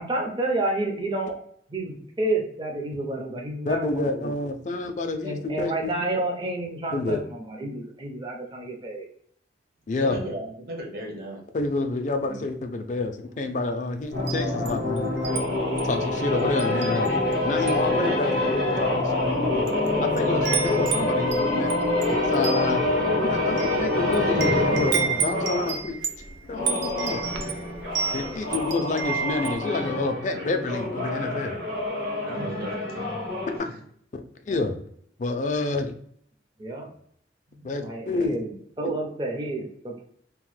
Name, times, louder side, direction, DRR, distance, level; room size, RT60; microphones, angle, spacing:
voice 1, 0.0-1.3 1.7-4.3 5.2-9.1 12.3-12.4 17.9-18.2 32.3-32.8 36.6-36.9 37.8-40.0, right 2 dB, 25° right, 1 dB, 0.5 m, -30 dB
voice 2, 3.6-5.9 6.9-7.2 9.9-10.2 11.5-15.1 15.8-17.1 17.4-19.7 20.0-21.7 22.1-22.8 23.2-25.9 26.5-27.2 28.1-31.6 34.5-34.8 35.2-35.9 37.6-38.4, left 3 dB, 40° left, 6 dB, 0.4 m, -28 dB
voice 3, 10.0-11.4 32.2-33.0 33.6-33.8 37.5-37.7, right 1 dB, 55° right, 0 dB, 0.8 m, -36 dB
sound 1, 14.1-25.8 26.4-33.6, left 2 dB, 70° right, 1.4 m, -26 dB
Wind chime, 14.1-15.4 15.8-16.0 16.6-17.3 17.6-17.9 18.7-18.8 19.4-19.9 20.1-29.6, right 6 dB, 85° right, 0.4 m, -31 dB
2.9 x 2.0 x 3.1 m, 0.65 s
head